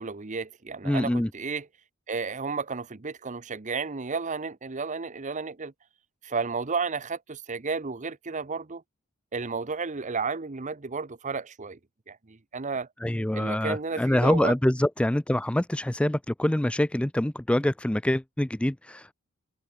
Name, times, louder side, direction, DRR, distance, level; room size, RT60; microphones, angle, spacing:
voice 1, 0.0-1.7 2.1-5.7 6.2-8.8 9.3-11.8 12.1-12.9 13.3-14.5, right 4 dB, 35° right, 0.8 m, -32 dB
voice 2, 0.8-1.3 13.0-19.1, left 1 dB, 5° left, 0.3 m, -25 dB
head